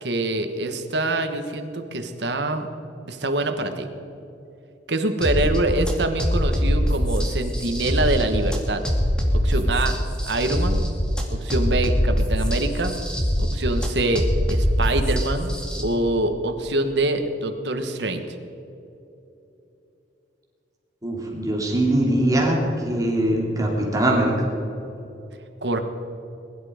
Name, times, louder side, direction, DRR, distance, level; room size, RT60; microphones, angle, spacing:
voice 1, 0.0-2.7 3.0-3.9 4.9-8.8 9.3-10.0 10.3-10.8 11.3-12.9 13.4-18.2 25.6-25.8, right 2 dB, 70° right, 6 dB, 1.5 m, -25 dB
sound 1, 5.2-15.8, equal, 5° left, 2.3 m, -23 dB
voice 2, 21.0-24.3, right 1 dB, 20° right, -2 dB, 3.1 m, -22 dB
21.5 x 12.0 x 5.1 m, 2.9 s
head